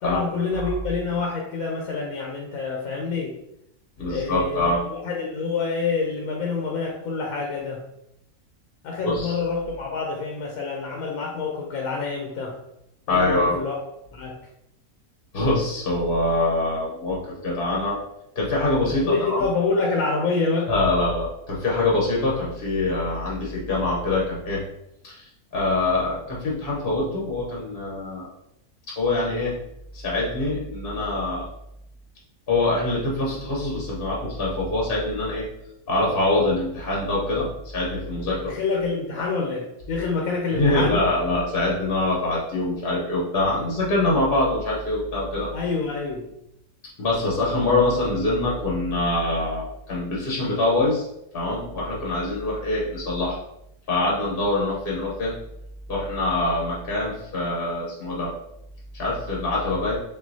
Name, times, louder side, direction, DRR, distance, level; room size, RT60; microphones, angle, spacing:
voice 1, 0.0-3.4 4.1-7.8 8.8-12.6 13.1-13.7 14.1-14.3 19.0-20.7 38.4-41.0 45.5-46.3, left 4 dB, 70° left, -1 dB, 1.1 m, -27 dB
voice 2, 4.0-4.8 9.0-9.4 13.1-13.6 15.3-18.0 18.4-19.4 20.7-24.6 25.0-28.3 29.0-29.5 29.9-31.5 32.5-35.4 35.9-38.5 39.2-39.3 40.5-45.5 47.0-51.1 51.3-53.4 53.9-55.3 55.9-58.3 59.0-60.0, left 2 dB, 45° left, -4 dB, 0.9 m, -24 dB
5.5 x 2.7 x 2.7 m, 0.82 s
omnidirectional pair, 1.6 m